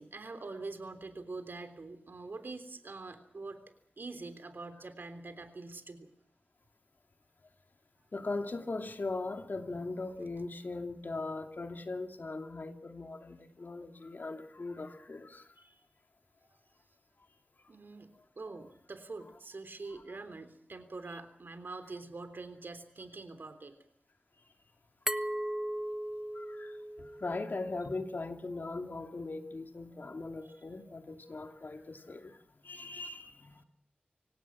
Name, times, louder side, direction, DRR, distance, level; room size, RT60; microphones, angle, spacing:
voice 1, 0.0-3.6 4.0-6.1 15.6-15.8 17.7-23.7, right 3 dB, 70° right, 9 dB, 3.4 m, -45 dB
voice 2, 8.1-15.5 24.3-24.5 26.3-33.6, left 3 dB, 60° left, 5 dB, 2.7 m, -40 dB
Glass, 25.1-27.8, right 1 dB, 10° right, 1.2 m, -37 dB
25.0 x 17.5 x 8.7 m, 0.68 s
wide cardioid pair, 55°, 4 cm